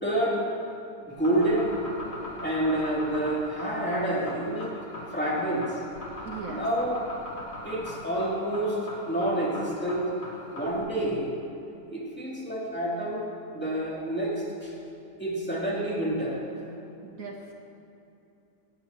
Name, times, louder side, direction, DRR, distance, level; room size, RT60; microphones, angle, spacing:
voice 1, 0.0-0.5 1.2-1.8 2.4-4.7 5.1-5.8 6.5-7.1 7.6-10.1 10.5-11.3 11.9-13.2 13.5-14.7 15.2-16.4, right 1 dB, 5° left, -6 dB, 3.0 m, -28 dB
sound 1, 1.1-10.8, left 1 dB, 75° left, 4.1 m, -39 dB
voice 2, 6.2-6.6 17.0-17.5, right 4 dB, 60° right, 1 dB, 1.3 m, -39 dB
19.0 x 18.0 x 3.1 m, 2.8 s
omnidirectional pair, 1.7 m